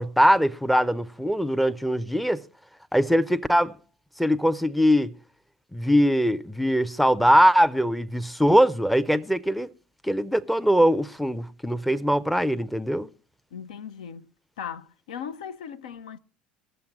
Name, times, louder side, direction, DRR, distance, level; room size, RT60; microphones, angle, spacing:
voice 1, 0.0-2.4 2.9-3.7 4.2-5.1 5.7-9.7 10.0-13.1, equal, ahead, 0.5 m, -21 dB
voice 2, 13.5-14.3 14.6-16.2, left 8 dB, 70° left, 0.6 m, -38 dB
20.0 x 7.1 x 4.5 m
figure-of-eight pair, 70°, 4 cm